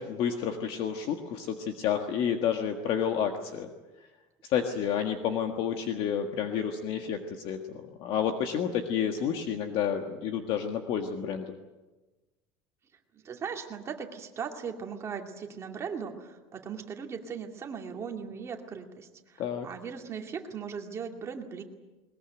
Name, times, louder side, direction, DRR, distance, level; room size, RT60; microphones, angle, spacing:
voice 1, 0.0-3.7 4.4-11.5 19.4-19.7, left 8 dB, 45° left, 5 dB, 1.7 m, -30 dB
voice 2, 13.1-21.6, right 6 dB, 20° right, 3 dB, 2.4 m, -38 dB
21.5 x 21.0 x 9.1 m, 1.2 s
cardioid pair, 170°, 12 cm